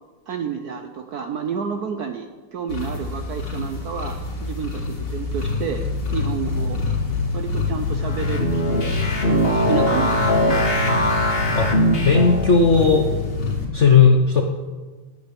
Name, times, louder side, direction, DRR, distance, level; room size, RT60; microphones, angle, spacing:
voice 1, 0.3-6.8 7.3-8.9 9.2-10.6, right 7 dB, 65° right, 6 dB, 1.0 m, -30 dB
sound 1, 2.7-13.7, left 3 dB, 85° left, 3.4 m, -26 dB
sound 2, 8.0-12.5, equal, 30° left, 1.8 m, -21 dB
voice 2, 12.0-13.1 13.7-14.4, left 5 dB, 55° left, 3 dB, 0.8 m, -15 dB
9.7 x 8.6 x 8.1 m, 1.3 s
omnidirectional pair, 2.3 m